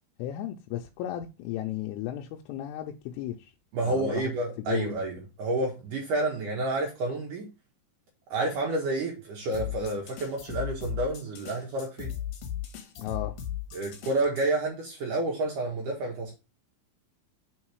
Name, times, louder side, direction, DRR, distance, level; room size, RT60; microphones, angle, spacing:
voice 1, 0.2-3.5 3.9-4.3 4.6-4.9 13.0-13.4, left 12 dB, 85° left, 3.1 m, -34 dB
voice 2, 3.7-7.5 8.3-12.1 13.7-16.3, right 2 dB, 85° right, 1.8 m, -29 dB
sound 1, 9.5-14.4, left 11 dB, 65° left, 2.3 m, -37 dB
7.4 x 3.9 x 4.7 m
omnidirectional pair, 5.9 m